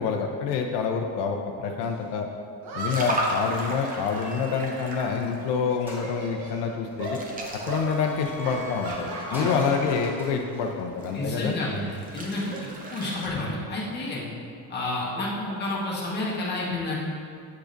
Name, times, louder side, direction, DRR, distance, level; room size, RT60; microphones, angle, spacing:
voice 1, 0.0-2.3 2.7-7.2 7.7-11.6, left 5 dB, 85° left, 2 dB, 0.6 m, -27 dB
sound 1, 1.8-1.9 2.6-5.3 5.6-6.6 7.0-7.2 7.7-7.9 8.4-10.1 10.4-10.7 11.9-13.3, right 2 dB, 65° right, 1.0 m, -38 dB
sound 2, 2.9-6.4 6.8-13.3, right 1 dB, 20° right, 0.6 m, -36 dB
sound 3, 4.1-5.1 5.5-5.6 5.9-12.0, left 1 dB, 5° right, 1.4 m, -43 dB
voice 2, 11.1-11.8 12.1-12.5 12.9-14.2 14.7-17.0, left 2 dB, 25° left, -6 dB, 1.2 m, -30 dB
8.2 x 5.0 x 2.5 m, 2.3 s
cardioid pair, 155°, 41 cm